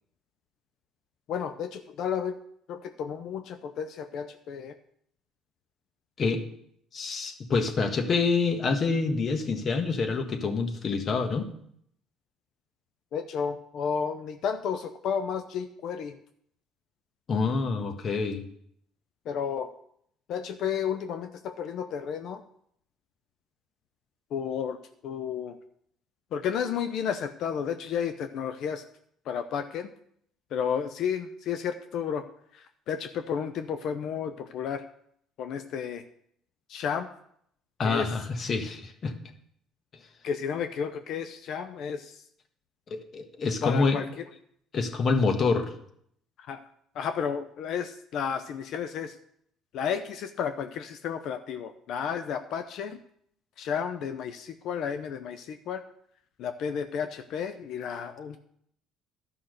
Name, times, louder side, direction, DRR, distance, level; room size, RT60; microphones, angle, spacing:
voice 1, 1.3-2.4 2.7-4.7 13.1-16.1 19.3-19.7 20.3-22.4 24.3-24.8 25.0-25.6 26.3-28.8 29.3-29.9 30.5-32.2 32.5-34.8 35.4-36.0 36.7-37.1 37.8-38.1 40.2-42.2 43.6-44.0 46.4-46.6 46.9-49.1 49.7-53.0 53.6-55.8 56.4-58.4, left 7 dB, 65° left, 8 dB, 0.6 m, -32 dB
voice 2, 6.9-11.5 17.3-18.4 37.8-39.1 42.9-44.0 44.7-45.7, left 4 dB, 45° left, 6 dB, 1.6 m, -27 dB
11.5 x 5.8 x 6.5 m, 0.69 s
supercardioid pair, 90°, 0 cm